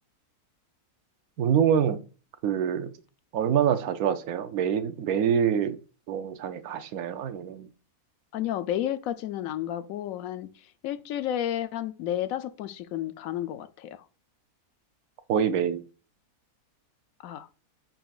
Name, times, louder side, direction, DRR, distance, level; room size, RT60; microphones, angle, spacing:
voice 1, 1.4-2.0 2.4-3.0 3.3-5.8 6.1-7.7 15.3-15.8, right 8 dB, 75° right, 1.1 m, -25 dB
voice 2, 8.3-10.5 10.8-14.0 17.2-17.5, left 11 dB, 70° left, 0.9 m, -31 dB
10.0 x 4.0 x 2.4 m
omnidirectional pair, 1.6 m